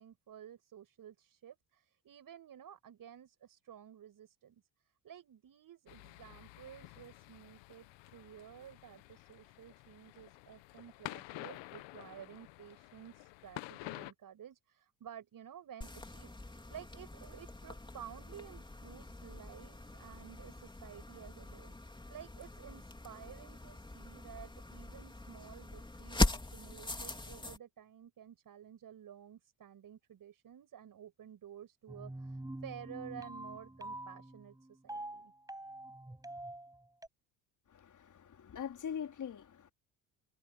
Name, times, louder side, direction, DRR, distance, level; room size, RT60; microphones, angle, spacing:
voice 1, 0.0-4.6 5.0-7.9 8.1-21.7 22.1-26.2 26.5-35.3, right 9 dB, 50° right, 7.9 m, -53 dB
sound 1, 5.9-14.1, left 21 dB, 75° left, 1.2 m, -50 dB
sound 2, 15.8-27.6, left 2 dB, 10° left, 3.9 m, -40 dB
sound 3, 31.9-37.1, right 1 dB, 10° right, 6.8 m, -46 dB
voice 2, 37.7-39.7, left 8 dB, 40° left, 4.2 m, -43 dB
supercardioid pair, 85°, 44 cm